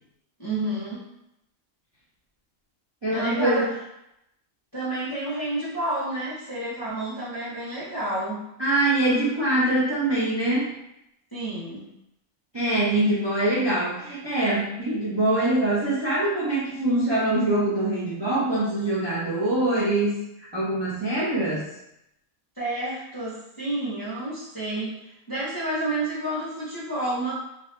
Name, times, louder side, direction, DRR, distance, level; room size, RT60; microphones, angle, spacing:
voice 1, 0.4-1.0 3.1-3.7 4.7-8.4 11.3-11.9 22.6-27.3, right 1 dB, 20° left, -9 dB, 0.7 m, -30 dB
voice 2, 3.0-3.7 8.6-10.7 12.5-20.2 20.5-21.6, right 1 dB, 35° right, -9 dB, 0.4 m, -23 dB
2.8 x 2.7 x 3.2 m, 0.84 s
omnidirectional pair, 1.5 m